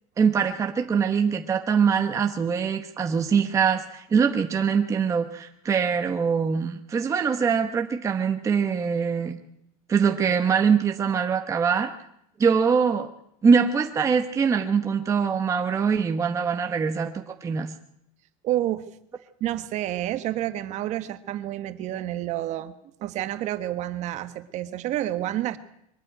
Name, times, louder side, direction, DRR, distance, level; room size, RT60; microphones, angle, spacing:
voice 1, 0.2-9.4 9.9-11.9 12.4-13.1 13.4-17.7, right 6 dB, 15° right, 5 dB, 1.0 m, -23 dB
voice 2, 18.4-18.8 19.4-22.7 23.0-25.6, right 13 dB, 40° right, 10 dB, 1.4 m, -29 dB
23.0 x 13.0 x 9.1 m, 0.77 s
supercardioid pair, 150°, 18 cm